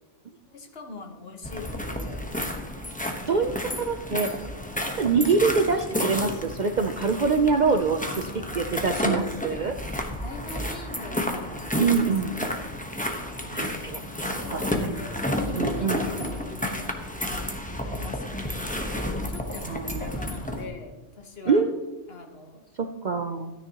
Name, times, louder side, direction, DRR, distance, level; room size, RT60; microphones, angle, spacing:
voice 1, 0.5-2.2 3.3-3.8 8.0-9.1 10.2-12.6 14.3-17.5 17.8-18.6 19.1-21.6 22.1-22.6, left 3 dB, 55° left, 3 dB, 1.5 m, -42 dB
sound 1, 1.4-20.6, left 1 dB, 5° left, 0.9 m, -31 dB
voice 2, 3.3-4.3 4.8-9.7 11.8-12.3 13.5-14.6 15.6-16.3 19.6-20.1 21.5-21.7 22.8-23.5, right 5 dB, 55° right, 6 dB, 0.5 m, -25 dB
sound 2, 7.6-17.8, equal, 85° right, 2.5 m, -48 dB
13.0 x 9.8 x 2.9 m, 1.2 s
omnidirectional pair, 1.3 m